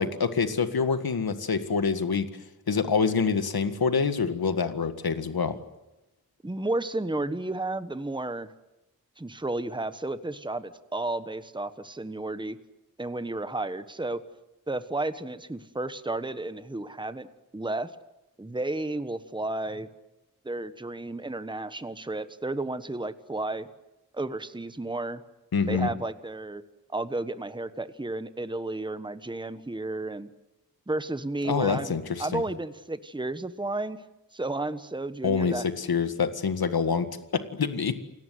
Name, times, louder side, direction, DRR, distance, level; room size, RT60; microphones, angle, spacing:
voice 1, 0.0-2.3 2.7-5.6 25.5-25.9 31.4-32.4 35.2-38.0, left 5 dB, 85° left, 10 dB, 1.9 m, -26 dB
voice 2, 6.4-8.5 9.2-12.6 13.0-14.2 14.7-17.9 18.4-19.9 20.4-23.7 24.1-25.2 25.7-26.6 26.9-30.3 30.9-34.0 34.3-35.6, right 2 dB, 15° right, 12 dB, 1.3 m, -32 dB
29.0 x 18.0 x 9.4 m, 0.98 s
wide cardioid pair, 75°, 36 cm